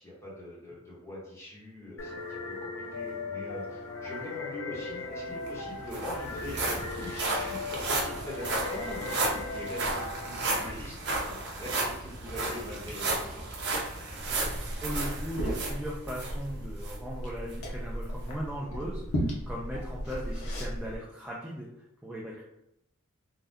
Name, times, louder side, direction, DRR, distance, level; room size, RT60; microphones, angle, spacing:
voice 1, 0.0-11.0 11.3-13.5, equal, 15° left, -6 dB, 1.0 m, -42 dB
sound 1, 2.0-10.7, left 3 dB, 60° left, 0.5 m, -38 dB
sound 2, 5.1-5.2 5.5-16.3 16.8-17.0 17.5-17.6, right 2 dB, 50° right, 0.6 m, -33 dB
Liquid, 14.2-21.0, equal, 90° left, 0.8 m, -35 dB
voice 2, 14.8-22.4, equal, 5° right, -5 dB, 0.3 m, -38 dB
2.6 x 2.2 x 3.5 m, 0.82 s
head